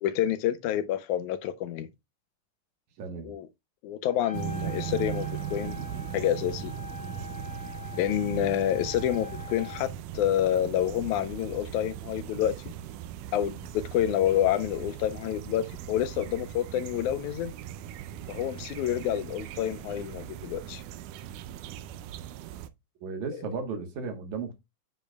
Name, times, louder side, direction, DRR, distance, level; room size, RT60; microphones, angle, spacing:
voice 1, 0.0-1.9 3.2-3.5 3.8-5.8 6.1-6.7 7.9-12.6 13.3-17.5 18.3-20.8, left 11 dB, 80° left, 2.1 m, -28 dB
voice 2, 3.0-3.4 23.0-24.5, right 4 dB, 70° right, 2.5 m, -35 dB
Trumpet, 4.1-9.9, left 9 dB, 20° left, 0.9 m, -43 dB
sound 1, 4.3-22.7, right 11 dB, 90° right, 2.1 m, -39 dB
8.8 x 5.0 x 2.2 m
omnidirectional pair, 3.5 m